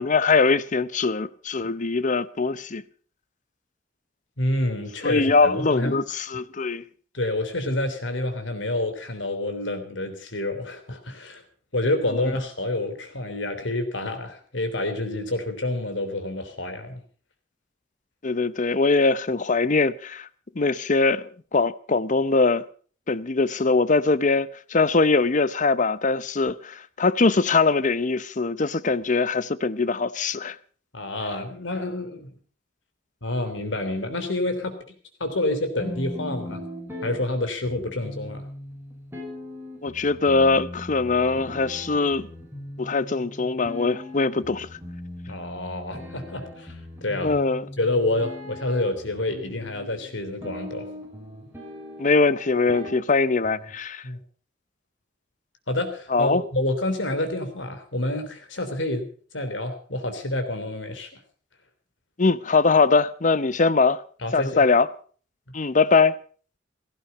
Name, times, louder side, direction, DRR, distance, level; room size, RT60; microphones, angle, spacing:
voice 1, 0.0-2.8 5.0-6.8 18.2-20.3 20.6-22.6 23.1-30.6 39.8-42.3 42.8-44.7 47.2-47.7 52.0-54.0 56.1-56.4 62.2-64.0 64.3-64.9 65.5-66.1, left 4 dB, 40° left, 0.7 m, -22 dB
voice 2, 4.4-6.0 7.1-11.4 11.7-17.0 30.9-32.4 33.2-34.8 35.2-36.7 37.0-38.4 45.3-46.8 47.0-47.4 47.8-50.9 54.0-54.2 55.7-59.1 59.3-61.1 64.2-64.6, left 1 dB, 80° left, 3.4 m, -28 dB
sound 1, 35.8-53.8, left 1 dB, 15° right, 5.6 m, -40 dB
17.0 x 15.0 x 5.5 m
head